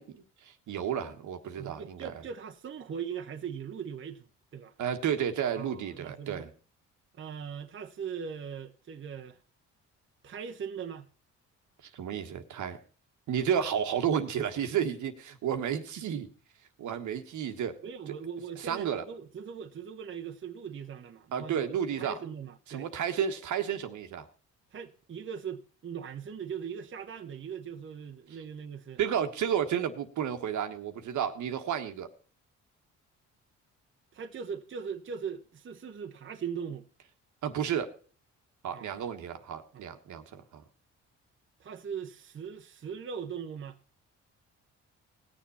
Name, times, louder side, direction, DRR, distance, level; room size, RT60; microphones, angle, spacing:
voice 1, 0.0-2.1 4.8-6.5 11.9-12.8 13.3-16.3 16.8-17.8 18.6-19.0 21.3-22.2 22.7-24.2 29.0-32.1 37.4-37.9 38.6-40.6, right 8 dB, 75° right, 1.4 m, -32 dB
voice 2, 1.6-4.3 4.5-4.7 5.6-6.5 7.2-9.4 10.2-11.1 17.8-22.9 24.7-29.0 34.1-36.9 38.7-38.9 39.7-39.9 41.6-43.8, right 7 dB, 40° right, 1.0 m, -40 dB
19.0 x 7.2 x 4.2 m
cardioid pair, 90°, 30 cm